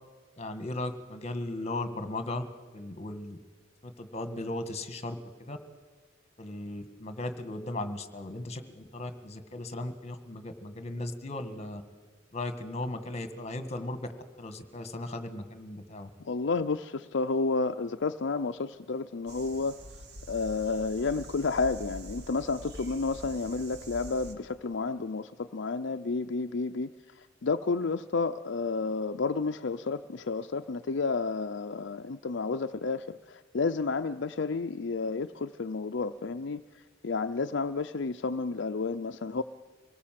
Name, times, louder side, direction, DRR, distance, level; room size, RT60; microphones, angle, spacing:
voice 1, 0.4-2.4 2.7-3.4 3.8-5.6 6.4-11.8 12.3-14.1 14.4-16.1, left 2 dB, 35° left, 10 dB, 1.7 m, -37 dB
voice 2, 16.2-19.8 20.3-26.9 27.4-36.6 37.0-39.4, left 4 dB, 65° left, 8 dB, 0.6 m, -31 dB
Le Jardin de Pamplemousse, 19.3-24.4, right 1 dB, 60° right, 2.2 m, -45 dB
25.5 x 18.5 x 7.6 m, 1.4 s
head